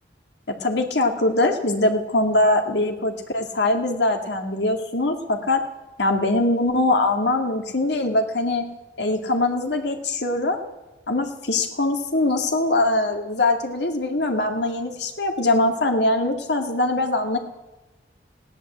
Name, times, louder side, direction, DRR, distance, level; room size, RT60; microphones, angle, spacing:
voice 1, 0.5-5.6 6.0-8.7 9.0-10.6 11.1-17.4, left 2 dB, 70° left, 4 dB, 2.1 m, -22 dB
16.5 x 11.0 x 8.0 m, 1.1 s
head